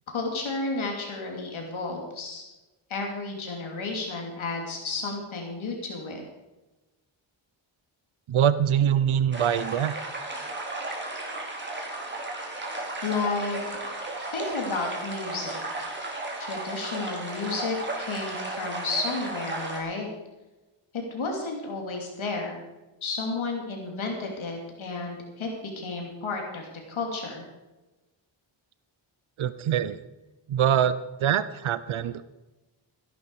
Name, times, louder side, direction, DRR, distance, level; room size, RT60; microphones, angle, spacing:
voice 1, 0.1-2.4 2.9-6.2 13.0-13.6 14.2-15.9 16.4-20.1 20.9-22.6 23.0-25.5 25.8-27.4, left 3 dB, 70° left, 1 dB, 3.0 m, -32 dB
voice 2, 8.3-10.0 29.4-30.0 30.5-32.2, right 9 dB, 75° right, 14 dB, 0.8 m, -24 dB
sound 1, 9.3-19.8, right 2 dB, 20° right, 3.8 m, -34 dB
15.0 x 11.5 x 4.8 m, 1.1 s
wide cardioid pair, 110°, 49 cm